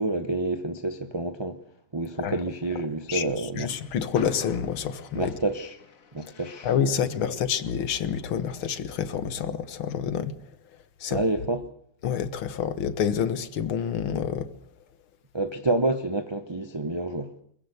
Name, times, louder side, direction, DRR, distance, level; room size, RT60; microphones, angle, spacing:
voice 1, 0.0-1.6 1.9-3.7 5.1-5.8 6.1-6.7 11.1-11.6 15.3-17.3, right 2 dB, 25° right, 0.6 m, -28 dB
voice 2, 3.1-5.3 6.6-10.3 11.0-11.2 12.0-14.5, left 8 dB, 75° left, 2.1 m, -28 dB
Train, 3.5-8.8, left 6 dB, 45° left, 1.6 m, -47 dB
22.5 x 20.0 x 8.1 m
omnidirectional pair, 2.3 m